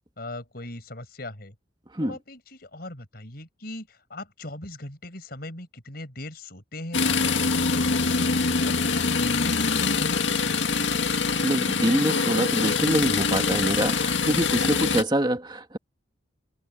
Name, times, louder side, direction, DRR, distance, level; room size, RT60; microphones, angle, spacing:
voice 1, 0.2-1.5 2.0-8.4 8.7-10.9, left 1 dB, 55° left, 5.3 m, -39 dB
sound 1, 6.9-15.0, left 4 dB, 85° left, 1.9 m, -24 dB
voice 2, 11.4-15.8, right 1 dB, 25° right, 2.4 m, -25 dB
head